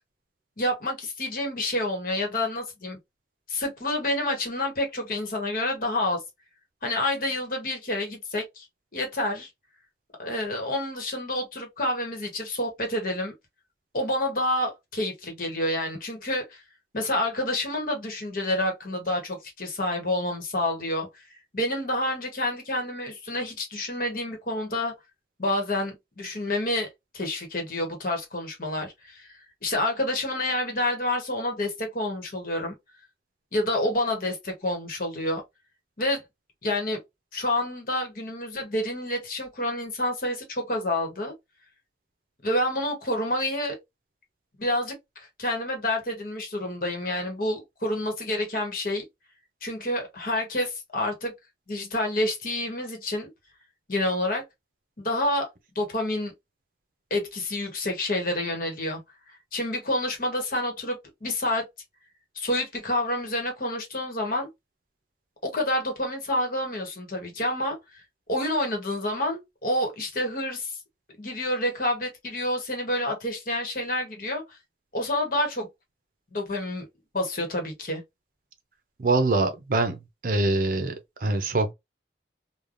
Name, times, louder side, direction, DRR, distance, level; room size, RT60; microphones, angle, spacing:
voice 1, 0.6-3.0 3.5-6.2 6.8-8.7 8.9-9.5 10.2-13.3 13.9-16.6 16.9-21.1 21.5-24.9 25.4-26.9 27.1-32.7 33.5-35.4 36.0-36.2 36.6-37.0 37.3-41.3 42.4-43.8 44.6-49.0 49.6-51.3 51.7-53.3 53.9-54.4 55.0-55.5 55.7-56.3 57.1-59.0 59.5-61.6 62.3-64.5 65.4-68.0 68.3-70.7 71.2-74.6 74.9-75.7 76.3-76.8 77.1-78.0, left 1 dB, 50° left, 1.2 m, -28 dB
voice 2, 79.0-80.9 81.2-81.7, right 2 dB, 50° right, 0.6 m, -24 dB
3.3 x 2.2 x 2.5 m
head